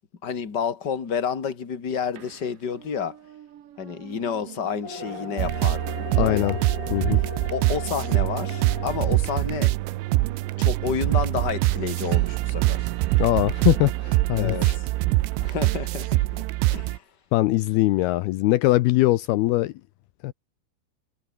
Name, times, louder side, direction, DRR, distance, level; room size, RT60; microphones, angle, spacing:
voice 1, 0.2-3.2 3.8-6.6 7.5-9.7 10.6-12.9 14.3-14.9 15.4-16.4 16.7-17.0, left 7 dB, 30° left, 2.4 m, -30 dB
sound 1, 2.2-16.9, right 11 dB, 55° right, 2.7 m, -44 dB
sound 2, 4.8-8.8, left 7 dB, 65° left, 5.9 m, -38 dB
sound 3, 5.4-17.0, right 19 dB, 85° right, 3.2 m, -24 dB
voice 2, 6.2-6.6 6.9-7.2 13.2-14.8 17.3-19.7 20.2-20.3, left 17 dB, 90° left, 2.2 m, -21 dB
omnidirectional pair, 5.6 m